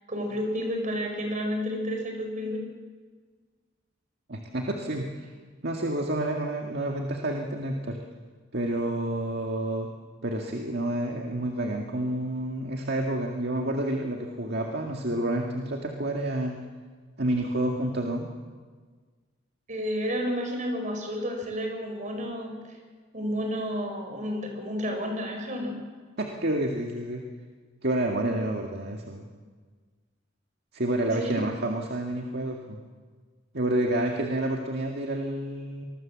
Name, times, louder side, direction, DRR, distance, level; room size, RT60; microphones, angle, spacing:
voice 1, 0.1-2.7 19.7-22.6 23.1-25.8 31.1-31.4, equal, 40° right, 4 dB, 5.2 m, -31 dB
voice 2, 4.3-5.3 5.6-8.0 8.5-9.9 10.2-16.5 17.2-18.3 26.2-27.2 27.8-29.3 30.7-32.8 33.5-35.9, right 1 dB, 55° right, 1 dB, 2.0 m, -29 dB
25.5 x 20.5 x 7.6 m, 1.5 s
head